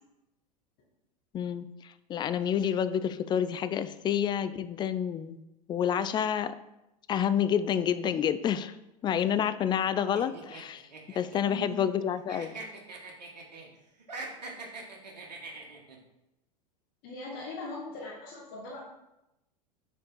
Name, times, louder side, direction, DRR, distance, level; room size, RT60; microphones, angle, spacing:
voice 1, 1.3-5.4 5.7-6.5 7.1-8.7 9.0-10.8 11.1-12.6, left 9 dB, 20° left, 12 dB, 0.3 m, -29 dB
sound 1, 10.1-12.0 12.3-13.7 14.0-16.0, right 3 dB, 85° right, 1.3 m, -43 dB
voice 2, 11.4-11.7 17.0-18.8, left 2 dB, 50° left, -4 dB, 1.7 m, -40 dB
6.4 x 4.3 x 4.5 m, 0.91 s
hypercardioid pair, 90°, 21 cm